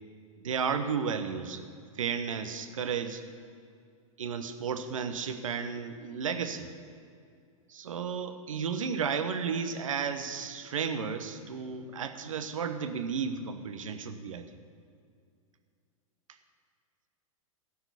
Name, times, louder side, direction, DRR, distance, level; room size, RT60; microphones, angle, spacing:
voice 1, 0.4-1.6 2.0-3.2 4.2-6.7 7.7-14.4, right 6 dB, 65° right, 9 dB, 1.0 m, -33 dB
16.0 x 6.0 x 6.9 m, 2.3 s
figure-of-eight pair, 100°, 18 cm